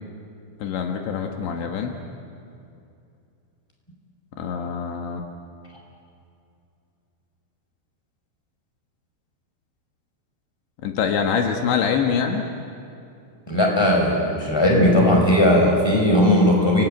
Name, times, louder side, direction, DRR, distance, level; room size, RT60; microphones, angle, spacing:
voice 1, 0.6-1.9 4.4-5.2 10.8-12.5, left 6 dB, 75° left, 3 dB, 3.6 m, -24 dB
voice 2, 13.5-16.8, left 1 dB, 5° left, 0 dB, 5.2 m, -17 dB
29.5 x 20.0 x 9.2 m, 2.6 s
omnidirectional pair, 5.3 m